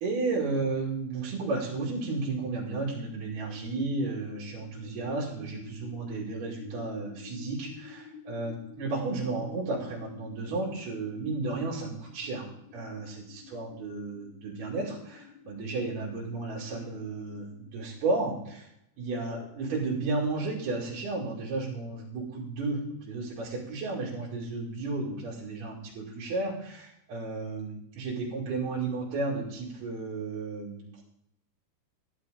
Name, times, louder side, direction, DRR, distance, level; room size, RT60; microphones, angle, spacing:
voice 1, 0.0-12.5 12.7-18.7 19.0-31.0, right 3 dB, 60° right, -7 dB, 4.2 m, -33 dB
sound 1, 3.2-18.2, left 5 dB, 80° left, 1.6 m, -50 dB
13.5 x 10.5 x 5.1 m, 0.77 s
omnidirectional pair, 5.3 m